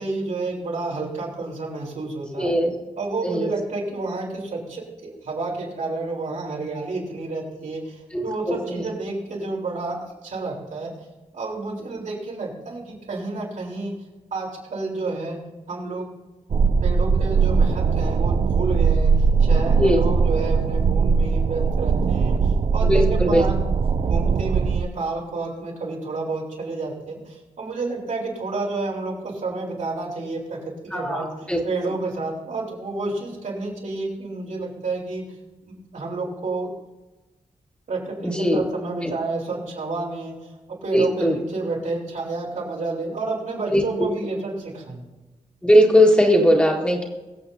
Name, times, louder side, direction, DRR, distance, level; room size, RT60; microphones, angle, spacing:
voice 1, 0.0-2.6 3.0-10.9 11.3-13.9 14.3-15.4 15.7-16.1 16.8-23.6 24.1-35.4 35.6-36.7 37.9-45.0, right 3 dB, 80° right, -4 dB, 4.1 m, -30 dB
voice 2, 2.4-2.7 3.2-3.5 8.1-8.8 19.8-20.0 22.8-23.4 30.9-31.6 38.2-38.6 39.0-39.1 40.9-41.3 43.7-43.8 45.6-47.0, equal, 10° left, -1 dB, 1.8 m, -19 dB
sound 1, 16.5-24.8, right 5 dB, 45° right, 0.4 m, -20 dB
23.5 x 8.1 x 2.8 m, 1.1 s
wide cardioid pair, 180°, 13 cm